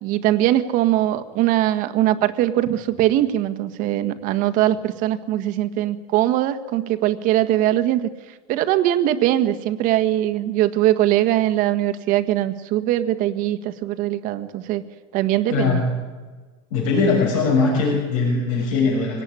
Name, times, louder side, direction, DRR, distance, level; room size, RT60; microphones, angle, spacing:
voice 1, 0.0-14.8 15.1-15.8, right 13 dB, 55° right, 9 dB, 1.6 m, -21 dB
voice 2, 15.5-15.8 16.7-19.2, left 4 dB, 85° left, -3 dB, 6.6 m, -20 dB
23.0 x 18.5 x 9.8 m, 1.4 s
supercardioid pair, 140°, 17 cm